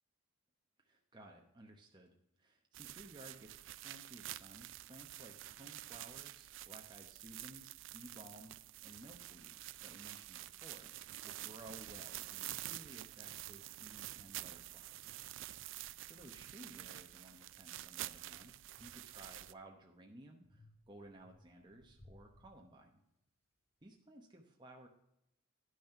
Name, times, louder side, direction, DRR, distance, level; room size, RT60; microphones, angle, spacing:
voice 1, 0.8-15.1 16.1-23.0 23.8-24.9, right 1 dB, 20° right, 1 dB, 0.9 m, -57 dB
sound 1, 2.7-19.5, right 15 dB, 60° right, 0.3 m, -48 dB
sound 2, 15.2-17.0 17.5-19.8 20.4-23.2, left 1 dB, 15° left, 4.7 m, -67 dB
10.5 x 6.2 x 5.7 m, 0.81 s
head